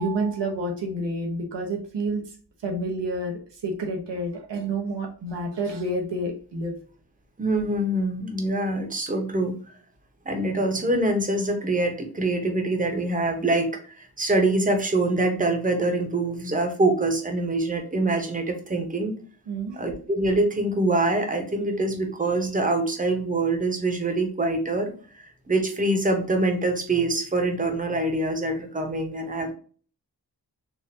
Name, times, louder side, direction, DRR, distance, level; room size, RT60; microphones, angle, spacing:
voice 1, 0.0-2.2 2.6-6.7 19.5-19.8, right 2 dB, 85° right, 1 dB, 1.0 m, -29 dB
voice 2, 7.4-9.5 10.2-19.1 19.7-29.5, right 2 dB, 20° right, 4 dB, 0.9 m, -25 dB
4.2 x 2.6 x 2.7 m, 0.41 s
wide cardioid pair, 70°, 41 cm